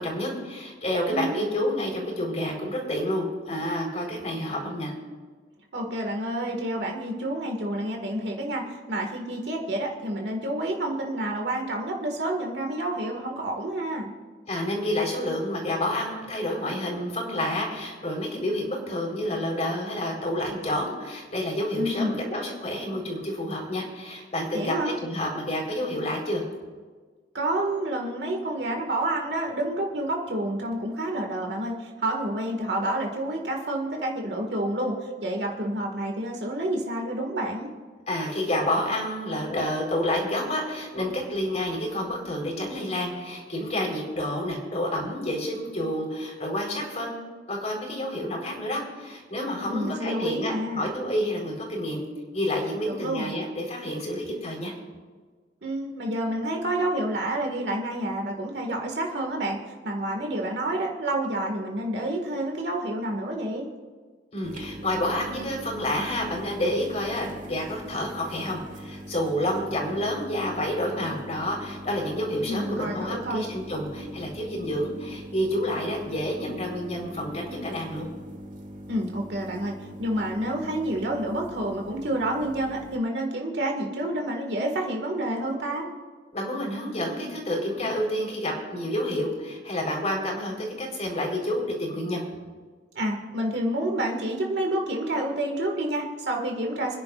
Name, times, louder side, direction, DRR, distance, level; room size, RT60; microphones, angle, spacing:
voice 1, 0.0-4.9 14.5-26.4 38.1-47.2 47.5-52.0 52.3-54.7 64.3-78.1 86.3-92.2, left 1 dB, 40° left, 0 dB, 4.0 m, -29 dB
voice 2, 1.1-1.4 5.7-14.1 21.8-22.2 24.5-25.0 27.3-37.7 49.6-50.9 53.0-53.3 55.6-63.7 72.4-73.5 78.9-85.9 93.0-97.0, right 1 dB, 70° right, 1 dB, 1.9 m, -29 dB
sound 1, 64.4-83.0, equal, 45° right, 1.5 m, -42 dB
29.5 x 10.5 x 2.5 m, 1.5 s
head